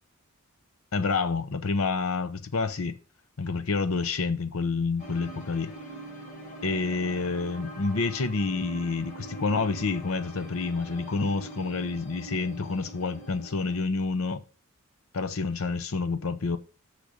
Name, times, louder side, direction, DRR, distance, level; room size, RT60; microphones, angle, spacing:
voice 1, 0.9-3.0 3.4-5.7 6.6-14.4 15.1-16.6, left 4 dB, 70° left, 0.8 m, -28 dB
sound 1, 5.0-13.8, right 2 dB, 40° left, 4.5 m, -43 dB
6.7 x 6.6 x 5.1 m
head